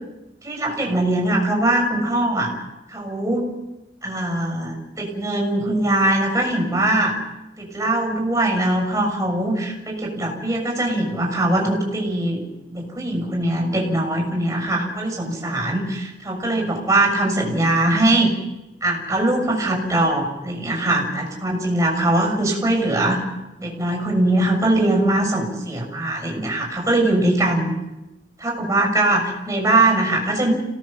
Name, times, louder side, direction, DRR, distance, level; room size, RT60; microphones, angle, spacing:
voice 1, 0.4-2.5 2.9-3.5 4.0-7.2 7.6-12.4 12.7-18.3 18.8-23.2 23.6-27.7 28.4-30.5, right 1 dB, 15° right, 1 dB, 6.5 m, -21 dB
27.0 x 17.5 x 7.4 m, 0.97 s
head